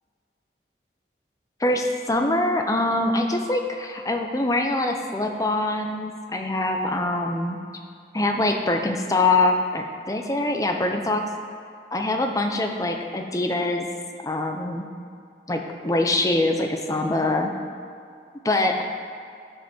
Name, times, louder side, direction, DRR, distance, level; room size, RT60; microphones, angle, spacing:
voice 1, 1.6-7.6 8.1-11.2 11.9-13.9 14.2-14.9 15.5-17.5 18.4-18.8, left 2 dB, 20° left, 4 dB, 0.6 m, -24 dB
10.0 x 5.2 x 6.1 m, 2.3 s
head